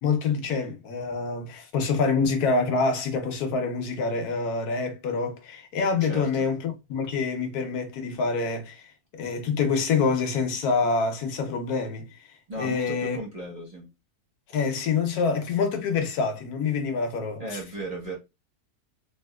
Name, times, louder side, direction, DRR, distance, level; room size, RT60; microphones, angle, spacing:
voice 1, 0.0-12.3 12.6-13.2 14.5-17.6, left 4 dB, 75° left, 1.2 m, -26 dB
voice 2, 12.5-13.9 17.4-18.2, right 1 dB, 30° right, 0.9 m, -35 dB
3.5 x 2.8 x 2.2 m
omnidirectional pair, 1.7 m